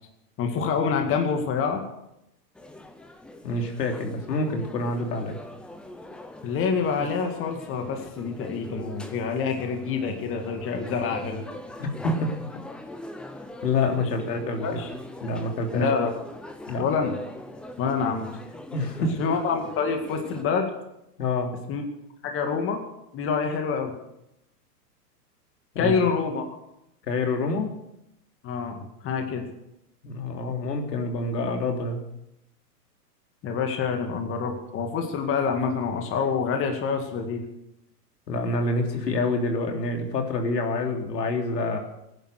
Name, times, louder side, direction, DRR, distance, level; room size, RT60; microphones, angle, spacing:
voice 1, 0.4-1.8 6.4-11.5 14.0-14.1 14.6-14.9 15.7-16.1 16.8-17.2 17.8-18.3 19.2-20.7 21.7-21.8 22.2-22.8 23.1-23.9 25.8-26.6 28.4-29.4 33.4-37.4, left 5 dB, 25° left, 4 dB, 2.2 m, -26 dB
sound 1, 2.5-20.4, left 1 dB, ahead, 0.4 m, -42 dB
voice 2, 3.4-5.4 11.8-12.3 13.6-14.8 15.2-15.9 16.7-16.8 18.7-19.2 21.2-21.5 25.8-25.9 27.1-27.7 30.0-32.0 38.3-41.8, left 2 dB, 85° left, 3 dB, 3.5 m, -27 dB
18.0 x 10.5 x 6.6 m, 0.84 s
hypercardioid pair, 135°, 48 cm